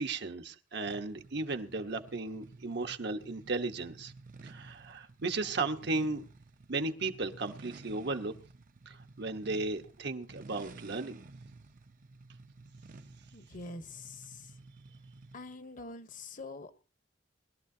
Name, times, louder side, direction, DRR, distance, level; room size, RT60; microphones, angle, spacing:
voice 1, 0.0-4.1 4.4-6.2 6.7-8.3 8.9-11.2, right 3 dB, 65° right, 5 dB, 1.2 m, -35 dB
sound 1, 0.9-15.6, right 3 dB, 45° right, 0.7 m, -53 dB
voice 2, 13.3-14.5 15.3-16.7, left 3 dB, 45° left, 10 dB, 1.0 m, -45 dB
21.0 x 12.5 x 2.8 m, 0.35 s
head